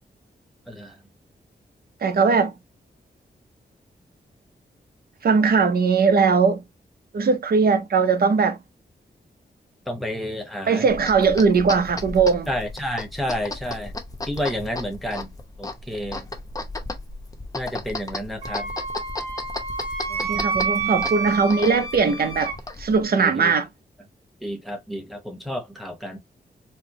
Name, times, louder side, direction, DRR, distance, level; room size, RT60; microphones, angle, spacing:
voice 1, 0.7-1.0 9.9-10.9 12.5-13.9 14.2-16.3 17.5-18.7 23.2-23.6 24.4-26.2, equal, ahead, 1.0 m, -30 dB
voice 2, 2.0-2.5 5.2-6.6 7.1-8.6 10.7-12.5 20.1-23.7, right 5 dB, 60° right, 0.7 m, -20 dB
sound 1, 10.9-23.0, left 2 dB, 20° left, 0.7 m, -35 dB
Wind instrument woodwind instrument, 18.4-22.6, right 5 dB, 35° right, 1.9 m, -29 dB
4.4 x 2.1 x 2.9 m
wide cardioid pair, 145°, 17 cm